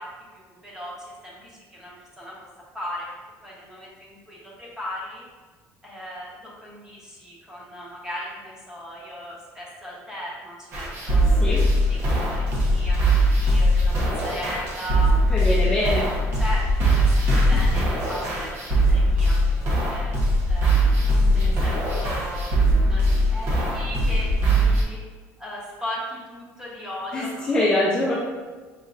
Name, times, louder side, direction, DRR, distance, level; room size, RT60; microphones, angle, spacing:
voice 1, 0.0-2.4 2.7-3.1 3.4-5.2 5.8-11.3 11.9-15.1 16.3-19.5 19.9-20.1 20.5-21.1 21.3-25.0 25.4-27.4, equal, 10° right, -6 dB, 1.1 m, -37 dB
sound 1, 10.7-24.8, right 1 dB, 45° right, 1.0 m, -21 dB
voice 2, 15.3-16.1 27.1-28.1, left 1 dB, 15° left, -7 dB, 0.6 m, -23 dB
6.2 x 2.7 x 2.5 m, 1.4 s
cardioid pair, 165°, 6 cm